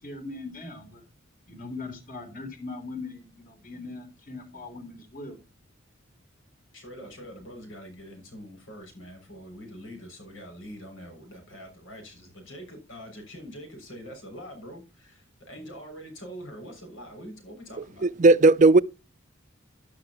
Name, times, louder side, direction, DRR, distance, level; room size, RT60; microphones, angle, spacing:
voice 1, 0.0-1.0 1.5-5.4, left 3 dB, 45° left, 3.7 m, -40 dB
voice 2, 6.7-18.1, equal, 90° left, 6.6 m, -44 dB
voice 3, 17.8-18.8, right 3 dB, 40° right, 0.5 m, -17 dB
12.5 x 12.0 x 3.0 m
head